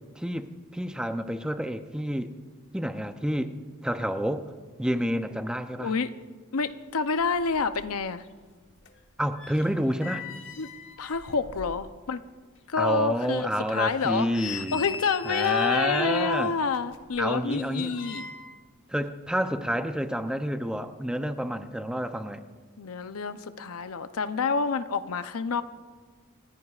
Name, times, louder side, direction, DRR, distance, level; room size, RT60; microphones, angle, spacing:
voice 1, 0.2-2.3 2.7-3.5 3.8-4.5 4.8-5.9 9.2-10.3 12.8-14.8 15.2-16.5 17.2-17.9 18.9-22.4, equal, 5° right, 8 dB, 0.5 m, -29 dB
voice 2, 5.8-6.1 6.5-8.2 10.6-10.7 11.0-12.2 12.7-18.3 22.8-25.6, left 5 dB, 85° left, 11 dB, 0.6 m, -28 dB
sound 1, 7.0-8.0 8.2-12.2 12.6-12.7 13.2-13.3 13.9-15.8 16.7-18.7 18.9-19.1, left 6 dB, 60° left, 1.2 m, -42 dB
28.5 x 14.5 x 2.4 m, 1.5 s
head